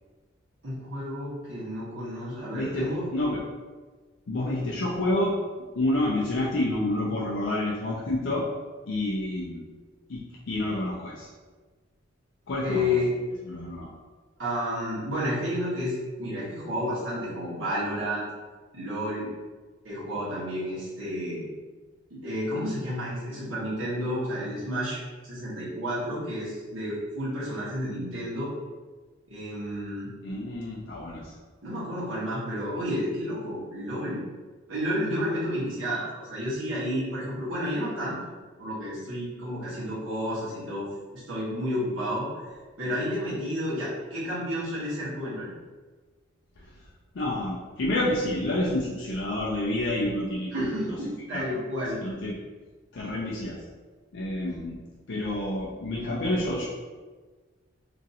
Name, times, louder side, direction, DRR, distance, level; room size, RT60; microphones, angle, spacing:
voice 1, 0.6-3.1 12.6-13.1 14.4-18.3 18.7-19.3 19.8-21.5 22.1-28.5 29.3-30.1 31.6-34.2 34.7-38.2 38.6-40.9 41.1-42.5 42.8-45.5 50.5-52.0 54.4-54.6, equal, 80° right, -10 dB, 1.2 m, -31 dB
voice 2, 2.5-2.9 3.1-3.4 4.3-5.4 5.7-8.5 8.9-9.6 10.1-11.3 12.5-12.9 13.5-13.9 30.2-31.3 47.1-50.5 51.3-51.6 52.0-52.4 52.9-53.6 54.1-54.8 55.1-56.7, left 1 dB, 65° left, -5 dB, 0.4 m, -28 dB
2.9 x 2.6 x 2.6 m, 1.3 s
head